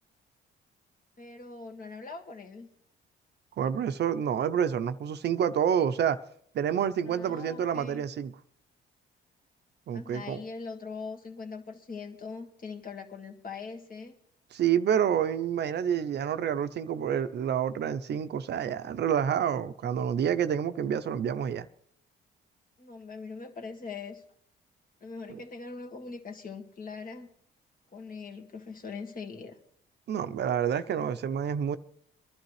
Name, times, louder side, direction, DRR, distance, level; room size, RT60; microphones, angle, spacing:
voice 1, 1.2-2.7 7.0-8.0 9.9-14.1 22.8-24.2 25.0-27.3 27.9-29.6, left 4 dB, 45° left, 1.8 m, -41 dB
voice 2, 3.6-6.2 6.5-8.3 9.9-10.4 14.5-21.7 25.3-25.4 30.1-31.8, right 8 dB, 60° right, 0.6 m, -28 dB
22.5 x 12.0 x 3.2 m
cardioid pair, 90°, 20 cm